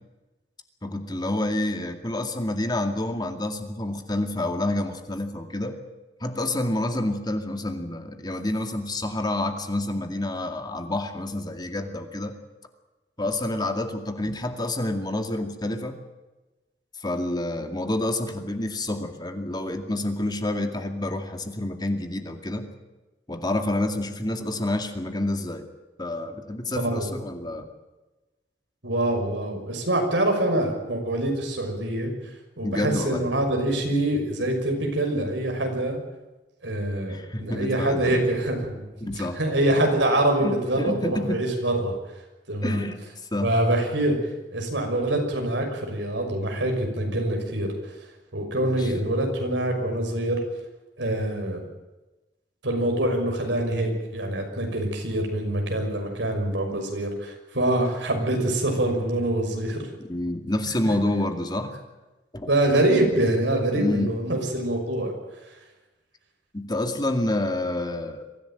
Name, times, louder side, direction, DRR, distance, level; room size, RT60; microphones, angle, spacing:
voice 1, 0.8-5.8 6.2-12.4 13.2-16.0 17.0-22.7 23.3-25.6 26.0-27.7 32.6-33.2 37.1-38.2 39.0-39.4 40.4-41.4 42.6-43.0 43.3-43.5 48.6-48.9 60.1-61.7 62.3-62.5 63.7-64.1 66.5-68.3, left 1 dB, 25° left, 6 dB, 2.3 m, -28 dB
voice 2, 26.8-27.1 28.8-32.1 32.6-36.0 36.6-38.9 39.4-42.0 42.5-42.9 43.4-44.2 44.5-47.9 48.3-50.4 51.0-51.6 52.6-59.9 62.5-65.1, right 1 dB, 90° right, 3 dB, 6.0 m, -25 dB
24.0 x 15.5 x 9.1 m, 1.1 s
head